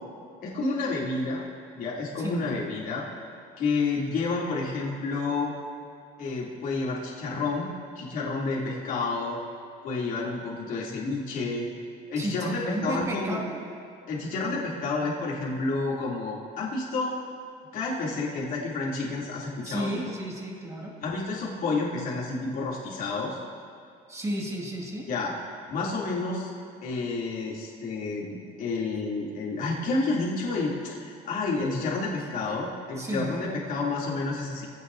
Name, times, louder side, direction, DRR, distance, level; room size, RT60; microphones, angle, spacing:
voice 1, 0.4-1.4 1.7-3.1 3.6-5.5 6.2-7.7 7.9-9.4 9.8-11.7 12.1-13.4 14.1-17.1 17.7-19.9 21.0-23.4 25.1-25.3 25.7-26.5 26.8-34.7, left 3 dB, 55° left, -4 dB, 3.1 m, -30 dB
voice 2, 12.2-13.6 19.6-20.9 24.1-25.1 33.0-33.3, right 1 dB, 20° right, -1 dB, 2.3 m, -33 dB
23.0 x 16.0 x 2.8 m, 2.4 s
cardioid pair, 150°, 17 cm